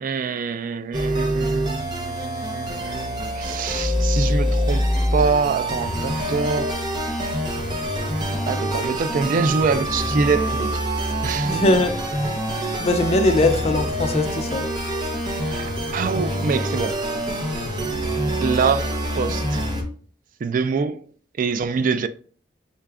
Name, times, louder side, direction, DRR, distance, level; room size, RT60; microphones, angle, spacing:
voice 1, 0.0-6.8 8.5-10.7 11.2-11.6 15.5-17.0 18.4-19.6 20.4-21.1 21.4-22.1, right 5 dB, 50° right, 0.3 m, -25 dB
sound 1, 0.9-19.8, equal, 25° right, 0.8 m, -25 dB
voice 2, 11.4-12.3 12.8-14.7, left 2 dB, 35° left, 0.5 m, -21 dB
5.6 x 2.4 x 3.4 m
head